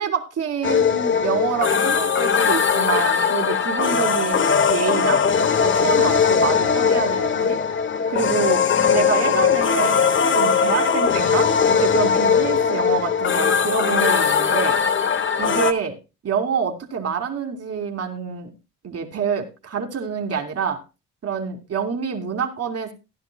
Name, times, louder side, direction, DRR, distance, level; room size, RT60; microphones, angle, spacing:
voice 1, 0.0-5.2 5.6-7.6 8.1-10.0 10.3-14.8 15.4-16.0 16.2-18.5 18.8-20.8 21.2-22.9, right 6 dB, 55° right, 4 dB, 2.7 m, -26 dB
sound 1, 0.6-15.7, left 6 dB, 40° left, 1.1 m, -19 dB
16.0 x 10.5 x 2.3 m, 0.27 s
cardioid pair, 90°, 30 cm